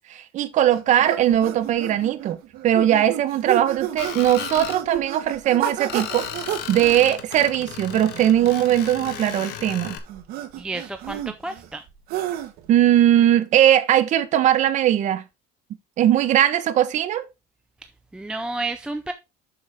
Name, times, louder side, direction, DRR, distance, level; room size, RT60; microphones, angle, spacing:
voice 1, 0.1-2.4 2.6-6.3 6.7-10.0 12.7-15.2 16.0-17.2, right 11 dB, 45° right, 1.0 m, -19 dB
sound 1, 0.7-12.7, right 11 dB, 60° right, 1.4 m, -32 dB
Screech, 4.0-4.8 5.9-10.0, left 9 dB, 65° left, 1.4 m, -35 dB
voice 2, 10.6-11.8 18.1-19.1, right 2 dB, 5° right, 0.4 m, -31 dB
7.3 x 6.4 x 3.5 m
cardioid pair, 155°, 17 cm